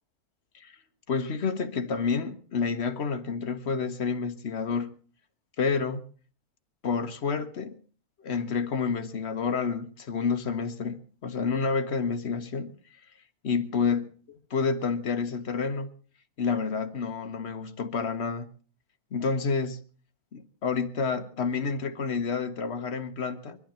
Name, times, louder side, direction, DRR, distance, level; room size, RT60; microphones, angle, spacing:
voice 1, 1.1-5.0 5.6-6.0 6.8-7.8 8.2-12.7 13.4-14.1 14.5-15.9 16.4-18.5 19.1-19.8 20.3-23.6, left 5 dB, 50° left, 1.2 m, -29 dB
23.0 x 12.0 x 4.3 m
omnidirectional pair, 1.6 m